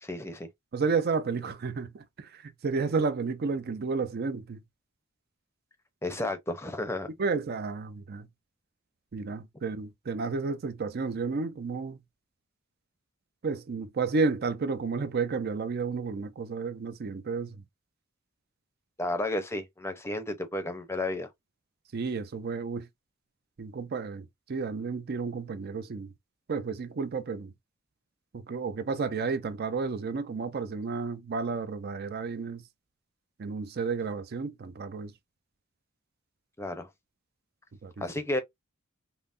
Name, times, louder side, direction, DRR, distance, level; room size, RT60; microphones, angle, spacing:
voice 1, 0.0-0.5 6.0-7.1 19.0-21.3 36.6-36.9 38.0-38.4, left 1 dB, 10° left, 0.6 m, -32 dB
voice 2, 0.7-4.6 7.2-8.3 9.1-12.0 13.4-17.6 21.9-22.9 23.6-26.1 26.5-27.5 28.3-32.6 33.4-35.1 37.8-38.0, right 4 dB, 50° right, 0.5 m, -31 dB
5.5 x 2.1 x 2.5 m
head